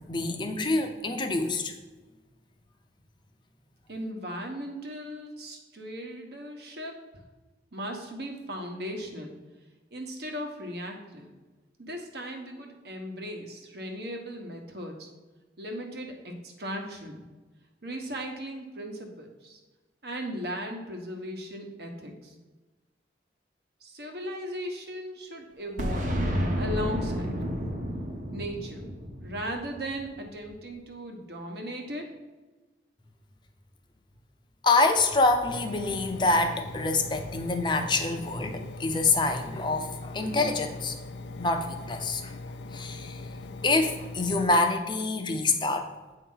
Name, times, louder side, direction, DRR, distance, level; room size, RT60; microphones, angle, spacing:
voice 1, 0.1-1.7 34.6-41.0 41.4-42.3 42.7-43.2 43.6-45.9, left 3 dB, 25° left, 6 dB, 0.6 m, -26 dB
voice 2, 3.9-7.0 7.7-9.3 9.9-11.3 11.8-15.1 15.6-17.2 17.8-19.6 20.0-22.3 23.8-26.2 26.5-27.4 28.3-28.9 29.2-32.1, equal, 60° right, 2 dB, 1.1 m, -37 dB
Boom, 25.8-30.5, equal, 45° right, 0.9 m, -31 dB
Engine, 35.5-44.5, left 2 dB, 80° left, 0.4 m, -41 dB
8.5 x 2.9 x 5.5 m, 1.2 s
head